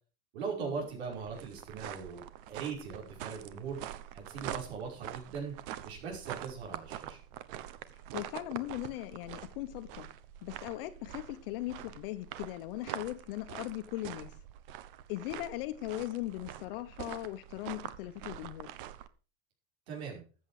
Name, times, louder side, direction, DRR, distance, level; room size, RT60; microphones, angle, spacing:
voice 1, 0.3-3.8 4.1-5.5 5.8-7.2 19.9-20.2, right 5 dB, 90° right, 5.4 m, -40 dB
sound 1, 0.7-19.1, right 12 dB, 55° right, 1.1 m, -45 dB
voice 2, 8.1-10.1 10.4-14.4 15.1-18.7, left 16 dB, 60° left, 1.1 m, -39 dB
14.0 x 8.4 x 4.9 m
supercardioid pair, 165°, 32 cm